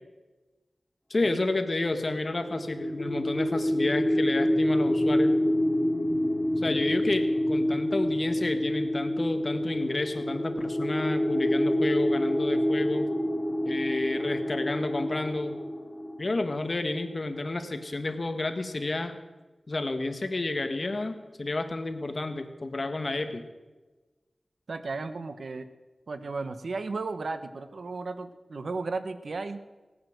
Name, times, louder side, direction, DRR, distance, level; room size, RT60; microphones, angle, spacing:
voice 1, 1.1-5.4 6.6-13.1 13.6-15.6 16.2-19.1 19.7-23.5, left 2 dB, 50° left, 7 dB, 1.5 m, -30 dB
sound 1, 2.1-17.0, left 1 dB, 15° left, 3.0 m, -27 dB
voice 2, 24.7-25.7 26.1-29.6, right 3 dB, 80° right, 11 dB, 0.9 m, -35 dB
17.5 x 9.4 x 7.9 m, 1.2 s
wide cardioid pair, 65°, 0 cm